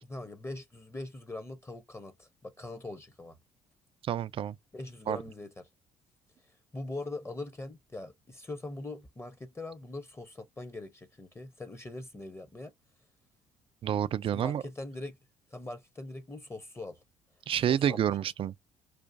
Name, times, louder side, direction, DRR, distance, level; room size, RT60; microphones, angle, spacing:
voice 1, 0.0-3.4 4.7-5.6 6.4-12.7 14.3-15.2 15.5-17.0 17.7-18.0, left 2 dB, 15° left, 0.8 m, -42 dB
voice 2, 4.0-4.6 5.1-5.2 13.8-14.6 17.5-18.5, right 10 dB, 35° right, 0.3 m, -29 dB
4.8 x 2.5 x 2.5 m
figure-of-eight pair, 50°, 17 cm